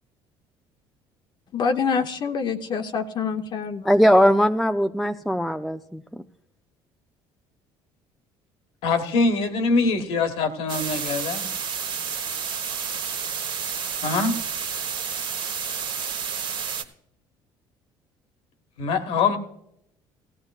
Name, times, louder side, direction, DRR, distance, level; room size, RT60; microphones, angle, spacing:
voice 1, 1.5-3.9, left 5 dB, 50° left, 4 dB, 0.7 m, -26 dB
voice 2, 3.9-6.0, equal, ahead, 6 dB, 0.4 m, -19 dB
voice 3, 8.8-11.5 14.0-14.4 18.8-19.4, left 4 dB, 70° left, 8 dB, 1.3 m, -23 dB
sound 1, 10.7-16.8, right 6 dB, 50° right, 1.2 m, -30 dB
17.5 x 14.0 x 2.4 m, 0.77 s
supercardioid pair, 90°, 10 cm